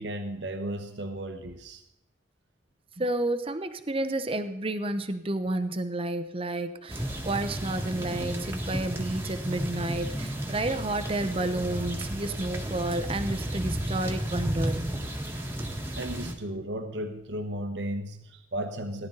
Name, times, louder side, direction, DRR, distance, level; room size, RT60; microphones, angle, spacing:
voice 1, 0.0-1.8 16.0-19.1, right 1 dB, 70° right, 6 dB, 1.2 m, -34 dB
voice 2, 3.0-14.9, right 2 dB, 30° right, 9 dB, 0.9 m, -31 dB
sound 1, 6.9-16.3, right 1 dB, 15° right, 1.6 m, -33 dB
18.5 x 11.5 x 4.0 m, 0.81 s
head